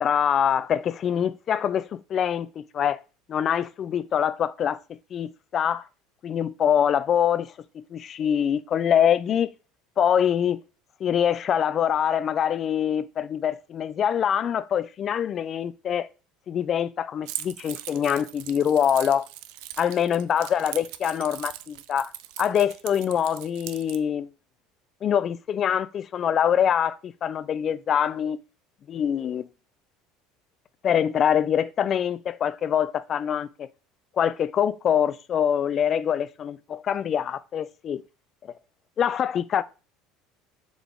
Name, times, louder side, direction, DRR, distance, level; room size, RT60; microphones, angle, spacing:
voice 1, 0.0-3.0 3.3-5.8 6.2-9.5 10.0-10.6 11.0-16.1 16.5-19.3 19.8-22.1 22.4-24.3 25.0-28.4 28.9-29.4 30.8-33.7 34.2-38.0 39.0-39.6, left 9 dB, 30° left, 0.3 m, -24 dB
Keys jangling, 17.3-24.0, right 14 dB, 70° right, 0.5 m, -39 dB
7.0 x 4.0 x 3.6 m
cardioid pair, 155°, 0 cm